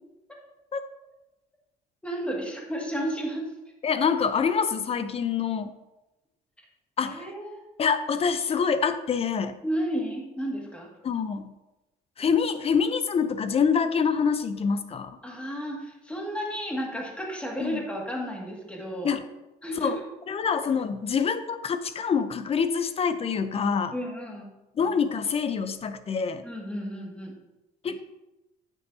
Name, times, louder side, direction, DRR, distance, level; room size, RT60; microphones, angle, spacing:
voice 1, 2.0-3.4 7.0-7.6 9.6-10.9 15.2-19.1 19.6-20.0 23.9-24.5 26.4-27.3, equal, 5° left, -1 dB, 2.0 m, -32 dB
voice 2, 3.8-5.7 7.0-7.3 7.8-9.6 11.0-11.5 12.2-15.2 17.6-17.8 19.0-19.2 19.8-20.0 20.3-23.9 24.8-26.4 27.8-28.1, left 6 dB, 35° left, 11 dB, 0.6 m, -26 dB
9.2 x 8.2 x 2.7 m, 1.0 s
cardioid pair, 110°, 17 cm